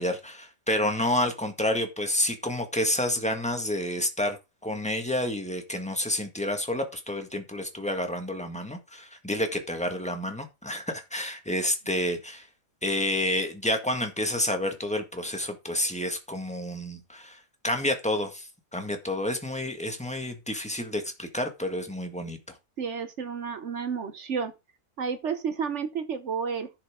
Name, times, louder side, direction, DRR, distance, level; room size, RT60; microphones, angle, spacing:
voice 1, 0.0-12.5 12.8-22.6, left 1 dB, 5° left, 1.7 m, -29 dB
voice 2, 22.8-24.5 25.0-26.7, right 6 dB, 60° right, 1.1 m, -31 dB
11.0 x 6.5 x 3.7 m
omnidirectional pair, 1.5 m